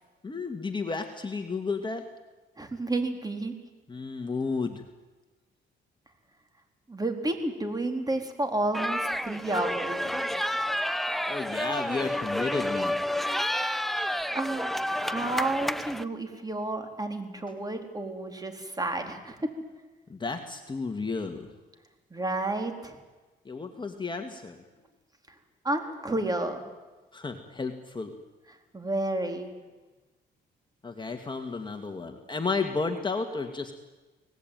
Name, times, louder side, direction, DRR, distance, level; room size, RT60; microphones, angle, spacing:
voice 1, 0.2-2.1 3.9-4.8 11.3-13.1 20.1-21.5 23.5-24.6 27.1-28.1 30.8-33.7, left 4 dB, 25° left, 5 dB, 2.1 m, -32 dB
voice 2, 2.6-3.5 6.9-10.1 14.3-19.5 22.1-23.0 25.6-26.6 28.7-29.5, right 2 dB, 20° right, 5 dB, 4.0 m, -31 dB
sound 1, 8.7-16.0, equal, ahead, 1.0 m, -30 dB
25.5 x 19.0 x 9.3 m, 1.2 s
cardioid pair, 90°, 20 cm